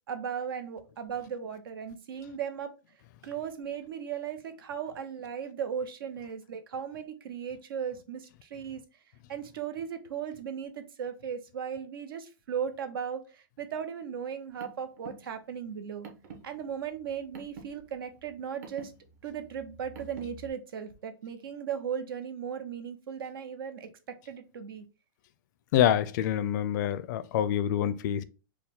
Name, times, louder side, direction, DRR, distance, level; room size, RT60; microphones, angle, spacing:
voice 1, 0.1-2.7 3.2-8.8 9.3-16.1 16.4-18.9 19.2-24.9, right 7 dB, 85° right, 0.8 m, -37 dB
Car, 14.3-20.5, right 4 dB, 50° right, 1.0 m, -49 dB
voice 2, 25.7-28.2, left 10 dB, 55° left, 0.4 m, -26 dB
4.7 x 2.2 x 3.6 m
supercardioid pair, 150°, 11 cm